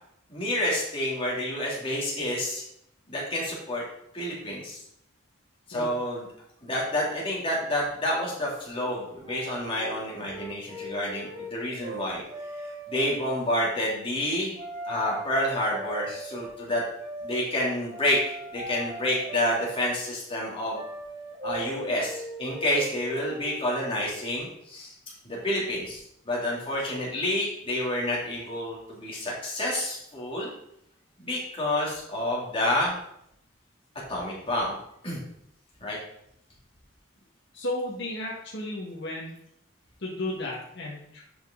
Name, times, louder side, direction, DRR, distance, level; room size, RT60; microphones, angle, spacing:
voice 1, 0.3-2.6 3.1-3.8 4.1-4.8 5.7-6.2 6.6-12.2 12.9-14.5 14.9-16.8 17.2-18.2 18.5-20.8 21.4-24.9 25.2-30.5 31.2-33.0 34.1-34.7 35.0-35.2 35.8-36.0, left 1 dB, 30° left, -5 dB, 3.1 m, -29 dB
sound 1, 9.2-11.5 11.8-13.4 14.6-16.6 17.0-17.4 17.9-20.0 20.7-24.4, right 1 dB, 30° right, 2.6 m, -39 dB
voice 2, 37.5-39.4 40.0-41.2, left 1 dB, 60° left, -4 dB, 1.8 m, -33 dB
10.5 x 5.6 x 3.9 m, 0.74 s
head